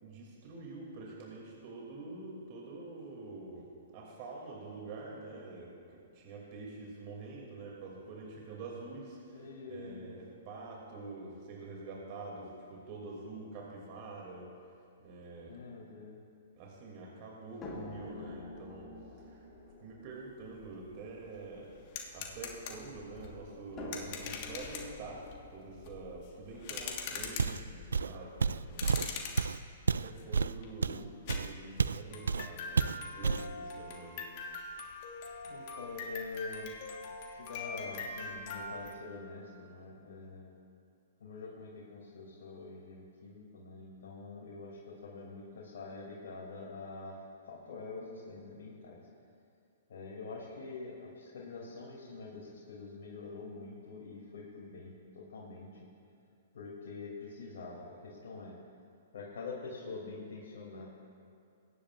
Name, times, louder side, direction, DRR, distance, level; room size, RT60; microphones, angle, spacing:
voice 1, 0.0-3.7 3.9-9.4 9.7-14.5 15.0-15.5 16.5-18.9 19.2-19.5 19.8-21.7 22.1-25.2 25.5-29.7 30.0-34.2, right 3 dB, 45° right, -3 dB, 2.6 m, -46 dB
voice 2, 9.3-10.1 15.5-16.2 30.8-31.1 35.4-36.7 37.3-40.5 41.2-47.2 47.4-49.0 49.9-55.8 56.5-58.5 59.1-60.8, left 3 dB, 70° left, -5 dB, 2.6 m, -45 dB
sound 1, 17.6-22.8 23.8-27.7 28.7-28.8 29.2-29.3, left 2 dB, 25° left, 2.2 m, -49 dB
sound 2, 20.5-20.6 20.9-38.9, left 5 dB, 45° left, 1.5 m, -43 dB
Walk footsteps, 27.4-27.7 27.9-32.0 32.3-32.5 32.8-33.5, right 5 dB, 85° right, 0.3 m, -30 dB
22.0 x 10.0 x 2.5 m, 2.6 s
hypercardioid pair, 135°, 0 cm